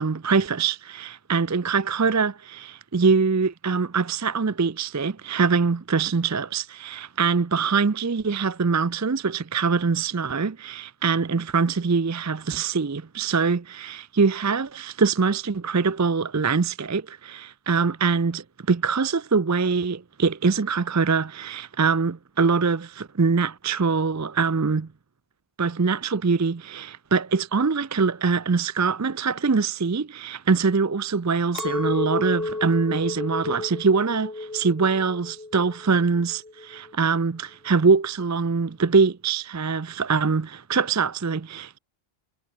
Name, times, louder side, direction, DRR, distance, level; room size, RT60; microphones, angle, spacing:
voice 1, 0.0-24.9 25.6-41.8, right 5 dB, 30° right, 0.3 m, -23 dB
Chink clink, 31.5-36.9, left 2 dB, 60° left, 3.7 m, -32 dB
omnidirectional pair, 1.1 m